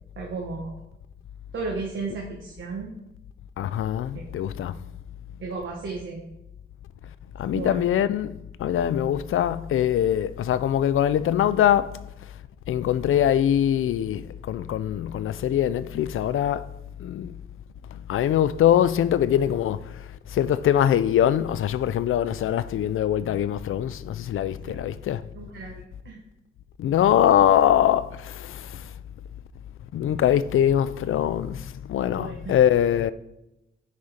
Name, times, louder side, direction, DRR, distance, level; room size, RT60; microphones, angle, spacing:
voice 1, 0.2-0.8 1.5-2.9 4.1-4.4 5.4-6.2 7.5-7.9 24.7-24.9 25.3-26.2 32.1-32.6, right 4 dB, 70° right, 1.2 m, -34 dB
voice 2, 3.6-4.8 7.4-11.9 12.7-16.7 17.0-17.3 18.1-19.9 20.3-25.2 26.8-28.9 29.9-33.1, left 10 dB, 75° left, 0.4 m, -23 dB
9.8 x 4.2 x 5.0 m
wide cardioid pair, 165°, 21 cm